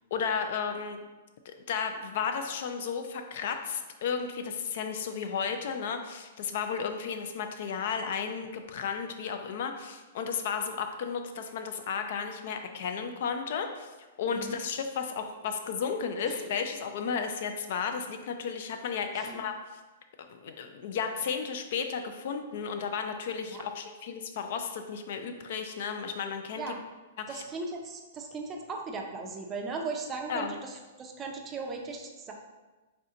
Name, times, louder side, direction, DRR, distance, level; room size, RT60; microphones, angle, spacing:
voice 1, 0.1-1.0 1.5-13.9 14.2-19.5 20.3-26.7 27.2-27.4 30.3-30.6, left 6 dB, 60° left, 6 dB, 0.4 m, -33 dB
voice 2, 14.3-14.6 16.3-16.5 19.1-19.4 23.5-23.6 26.6-26.8 27.3-32.3, right 3 dB, 20° right, 1 dB, 0.4 m, -38 dB
3.3 x 2.7 x 3.7 m, 1.2 s
hypercardioid pair, 150°, 0 cm